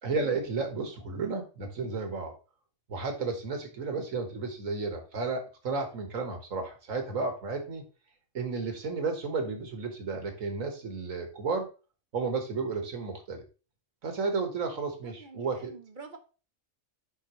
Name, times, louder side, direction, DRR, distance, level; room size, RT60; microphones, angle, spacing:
voice 1, 0.0-2.3 2.9-7.8 8.3-11.7 12.1-13.4 14.0-15.7, right 4 dB, 85° right, 5 dB, 1.9 m, -32 dB
voice 2, 15.0-16.2, right 5 dB, 45° right, 6 dB, 0.9 m, -47 dB
10.0 x 4.1 x 3.1 m, 0.33 s
omnidirectional pair, 1.4 m